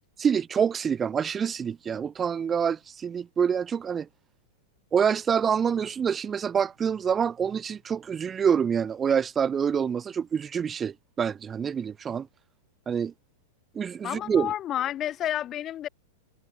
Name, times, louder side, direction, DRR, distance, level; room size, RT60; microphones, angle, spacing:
voice 1, 0.2-4.1 4.9-12.3 12.9-13.1 13.7-14.5, right 7 dB, 20° right, 1.6 m, -26 dB
voice 2, 14.0-15.9, left 11 dB, 30° left, 5.2 m, -30 dB
figure-of-eight pair, 100°, 0 cm